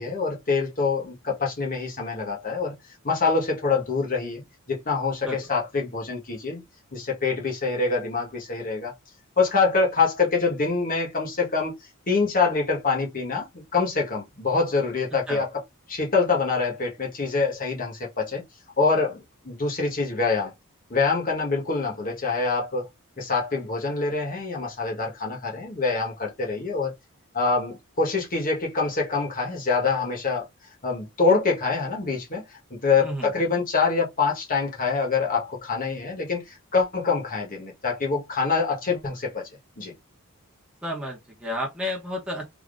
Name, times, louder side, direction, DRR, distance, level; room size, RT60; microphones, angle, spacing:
voice 1, 0.0-2.7 3.0-6.6 6.9-8.9 9.4-11.8 12.1-15.6 15.9-18.4 18.8-20.5 20.9-22.9 23.2-26.9 27.3-30.5 30.8-32.4 32.7-39.5 39.8-39.9, left 4 dB, 40° left, 1.3 m, -25 dB
voice 2, 40.8-42.5, left 1 dB, 5° right, 0.9 m, -31 dB
3.6 x 2.8 x 2.5 m
head